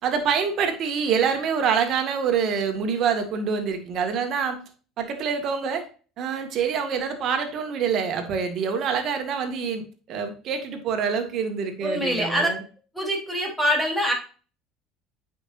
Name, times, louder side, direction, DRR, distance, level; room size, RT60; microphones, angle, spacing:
voice 1, 0.0-4.6 5.0-5.9 6.2-12.6, right 6 dB, 55° right, 6 dB, 1.9 m, -26 dB
voice 2, 11.8-12.5 12.9-14.1, equal, ahead, -1 dB, 3.7 m, -24 dB
8.9 x 5.6 x 2.6 m, 0.37 s
supercardioid pair, 90°, 0 cm